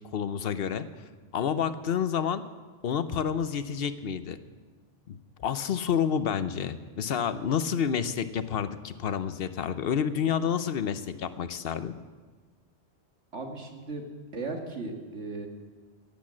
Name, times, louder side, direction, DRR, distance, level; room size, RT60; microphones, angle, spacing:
voice 1, 0.1-0.9 1.3-2.4 2.8-4.4 5.1-5.2 5.4-11.9, left 8 dB, 60° left, 12 dB, 0.9 m, -29 dB
voice 2, 13.3-14.0 14.3-15.5, right 3 dB, 90° right, 3 dB, 2.1 m, -36 dB
16.5 x 8.4 x 7.4 m, 1.4 s
omnidirectional pair, 1.2 m